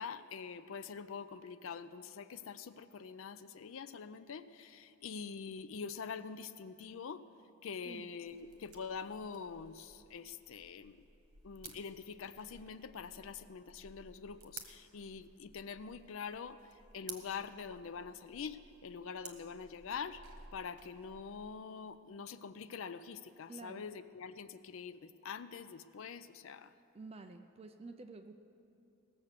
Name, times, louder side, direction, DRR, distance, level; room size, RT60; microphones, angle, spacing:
voice 1, 0.0-7.3 7.6-11.1 11.4-20.2 20.5-26.7, left 6 dB, 60° left, 13 dB, 0.4 m, -45 dB
sound 1, 8.2-21.5, right 5 dB, 80° right, 1.3 m, -56 dB
voice 2, 23.5-23.9 26.9-28.3, right 3 dB, 25° right, 7 dB, 0.4 m, -50 dB
17.5 x 7.2 x 6.6 m, 2.7 s
head